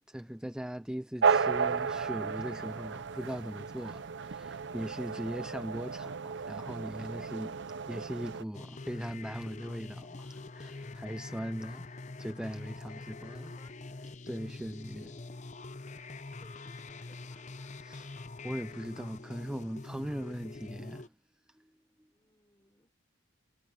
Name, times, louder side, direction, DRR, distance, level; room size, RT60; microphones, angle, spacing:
voice 1, 0.1-13.5 14.3-15.1 17.8-21.1 21.5-21.7, equal, 5° right, 0.4 m, -40 dB
sound 1, 1.2-8.4, right 5 dB, 55° right, 0.6 m, -33 dB
sound 2, 8.5-21.1, left 3 dB, 35° left, 0.7 m, -45 dB
voice 2, 13.0-13.8 16.3-17.9 22.1-22.9, left 2 dB, 20° left, 6.4 m, -63 dB
head